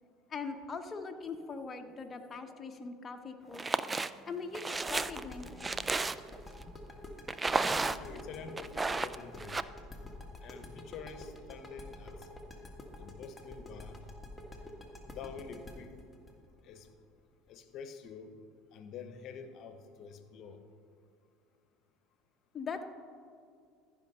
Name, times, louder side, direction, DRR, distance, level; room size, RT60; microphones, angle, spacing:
voice 1, 0.3-3.9 4.2-5.7 6.7-6.8 22.5-22.8, left 4 dB, 30° left, 5 dB, 0.9 m, -41 dB
sound 1, 3.5-4.1 4.5-6.4 7.3-8.2 8.6-9.6, right 3 dB, 20° right, 0.3 m, -32 dB
sound 2, 4.7-17.5, left 1 dB, 10° left, 1.6 m, -48 dB
voice 2, 7.7-9.6 10.4-12.3 13.0-14.0 15.0-16.0 16.6-16.9 17.5-18.3 18.7-20.6, left 6 dB, 55° left, 9 dB, 1.0 m, -47 dB
14.0 x 5.2 x 5.5 m, 2.4 s
hypercardioid pair, 85°, 0 cm